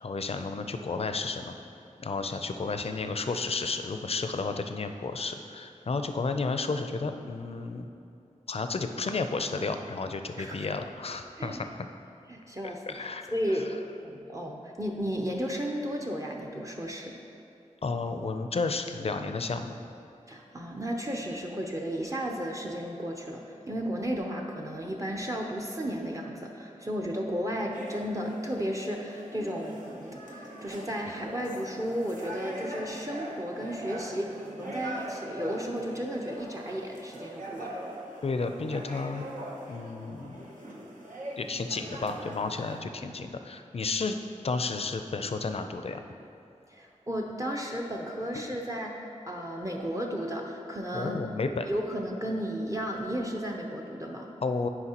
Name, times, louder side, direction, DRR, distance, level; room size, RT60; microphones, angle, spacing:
voice 1, 0.0-1.5 2.0-7.9 8.5-11.7 12.6-13.2 17.8-19.7 38.2-39.3 39.7-40.4 41.4-44.2 44.4-46.0 50.9-51.7 54.4-54.7, left 4 dB, 50° left, 7 dB, 0.4 m, -32 dB
voice 2, 12.3-13.7 14.0-17.2 20.3-37.8 46.7-49.0 49.3-51.2 51.7-54.3, equal, 25° right, 1 dB, 0.6 m, -34 dB
sound 1, 27.7-42.8, right 1 dB, 85° right, 0.9 m, -42 dB
9.8 x 4.8 x 2.9 m, 2.7 s
wide cardioid pair, 55°, 13 cm